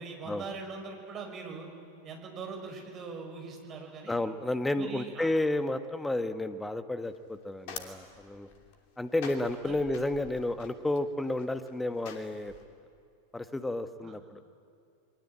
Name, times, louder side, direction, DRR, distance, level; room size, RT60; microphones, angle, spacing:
voice 1, 0.0-1.7 2.0-4.2 4.7-5.3 9.6-9.8 14.0-14.1, right 4 dB, 30° right, 3 dB, 5.4 m, -41 dB
voice 2, 4.1-8.5 9.0-12.5 13.3-14.4, left 2 dB, 5° left, 11 dB, 1.3 m, -31 dB
sound 1, 7.0-12.6, left 6 dB, 50° left, 2.8 m, -48 dB
28.0 x 22.5 x 8.7 m, 2.4 s
figure-of-eight pair, 90°, 0 cm